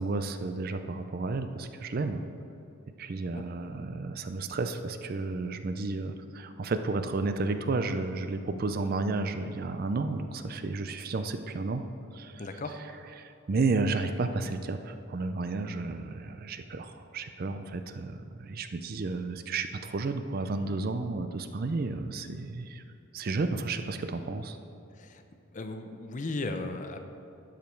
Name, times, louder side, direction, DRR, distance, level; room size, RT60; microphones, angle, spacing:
voice 1, 0.0-2.2 3.0-11.8 12.1-12.5 13.2-22.8 23.1-24.6, right 3 dB, 45° right, 9 dB, 0.4 m, -32 dB
voice 2, 12.4-12.8 25.0-25.2 25.5-27.0, left 2 dB, 35° left, 7 dB, 0.5 m, -36 dB
12.0 x 5.0 x 4.5 m, 2.7 s
head